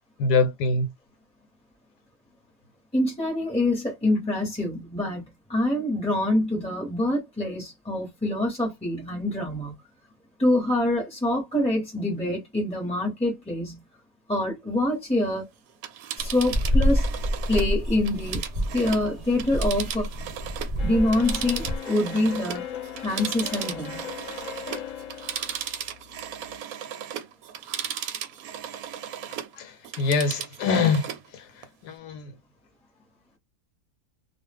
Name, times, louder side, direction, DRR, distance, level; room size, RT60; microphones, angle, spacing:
voice 1, 0.2-0.9 29.6-31.5 31.8-32.3, left 4 dB, 90° left, 1.2 m, -24 dB
voice 2, 2.9-9.7 10.4-13.8 14.3-15.5 16.2-17.0 17.5-18.4 18.7-20.1 20.8-22.6 23.0-24.1, left 1 dB, 5° left, 0.7 m, -25 dB
Telephone, 15.7-20.8 21.1-29.5 29.8-31.3 31.6-31.7, right 9 dB, 70° right, 1.0 m, -36 dB
sound 1, 16.2-21.8, equal, 35° right, 0.6 m, -27 dB
sound 2, 20.8-26.5, left 9 dB, 60° left, 0.9 m, -38 dB
2.4 x 2.4 x 3.4 m
omnidirectional pair, 1.7 m